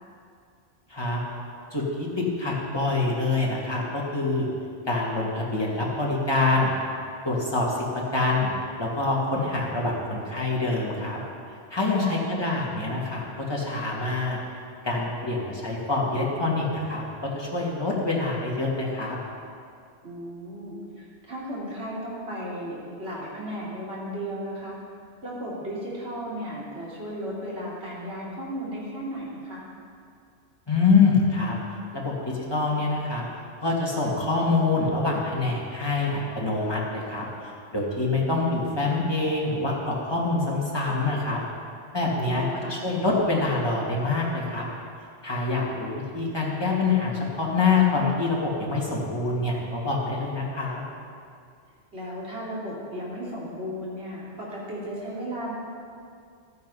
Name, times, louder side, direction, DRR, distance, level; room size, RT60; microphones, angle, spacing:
voice 1, 0.9-1.2 1.7-4.5 4.9-6.7 7.2-8.5 8.8-11.2 11.7-14.4 14.8-19.2 30.7-31.6 31.9-33.2 33.6-41.4 41.9-44.6 45.2-50.8, left 3 dB, 20° left, -4 dB, 2.2 m, -25 dB
voice 2, 12.0-12.3 20.0-24.8 25.2-29.6 42.2-42.8 51.9-55.5, equal, 65° right, -7 dB, 3.4 m, -35 dB
13.0 x 9.4 x 5.5 m, 2.3 s
omnidirectional pair, 1.2 m